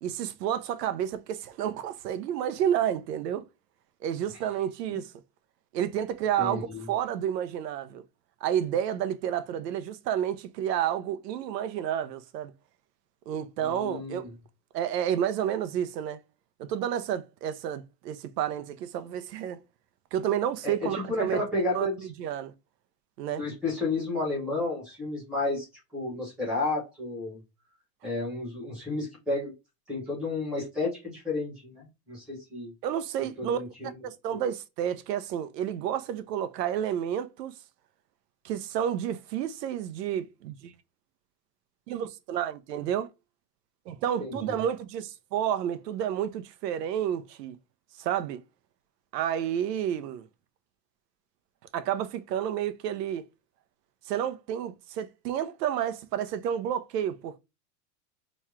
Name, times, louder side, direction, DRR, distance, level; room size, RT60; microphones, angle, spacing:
voice 1, 0.0-3.5 4.0-5.1 5.7-8.0 8.4-12.5 13.3-14.3 14.7-16.2 16.6-19.6 20.1-22.5 23.2-23.4 32.8-33.6 34.0-37.5 38.4-40.7 41.9-43.1 43.9-47.6 48.0-48.4 49.1-50.3 51.7-53.3 54.0-57.4, right 10 dB, 90° right, 0.7 m, -30 dB
voice 2, 6.4-6.8 13.6-14.3 20.6-22.0 23.4-25.7 25.9-27.4 28.0-29.5 29.9-32.7 33.4-33.9 44.2-44.6, left 2 dB, ahead, 0.4 m, -32 dB
3.1 x 2.4 x 4.3 m
supercardioid pair, 175°, 47 cm